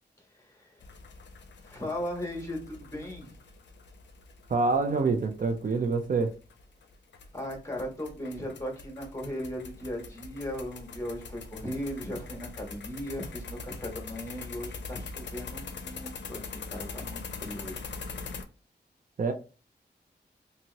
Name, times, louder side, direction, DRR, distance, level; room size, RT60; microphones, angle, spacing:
voice 1, 0.3-0.8 1.6-3.4 7.3-16.4 16.7-17.8, equal, 15° left, 1.3 m, -37 dB
sound 1, 0.8-18.4, left 4 dB, 90° left, 0.4 m, -43 dB
voice 2, 4.5-6.4 19.2-19.3, right 4 dB, 50° right, 0.4 m, -26 dB
2.8 x 2.6 x 2.8 m
wide cardioid pair, 75°, 18 cm